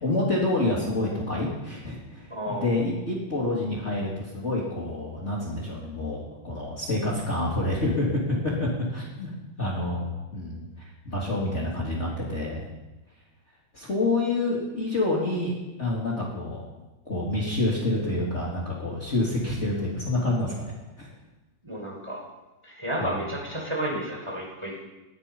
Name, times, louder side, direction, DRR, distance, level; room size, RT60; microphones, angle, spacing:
voice 1, 0.0-8.1 8.6-9.3 9.6-12.7 13.7-15.5 15.8-16.7 17.1-20.7 21.0-21.1 23.0-23.3, left 2 dB, 35° left, -4 dB, 3.1 m, -28 dB
voice 2, 2.3-2.8 21.6-22.2 22.6-24.8, right 1 dB, 15° right, -3 dB, 4.8 m, -31 dB
19.0 x 12.5 x 5.5 m, 1.1 s
omnidirectional pair, 2.2 m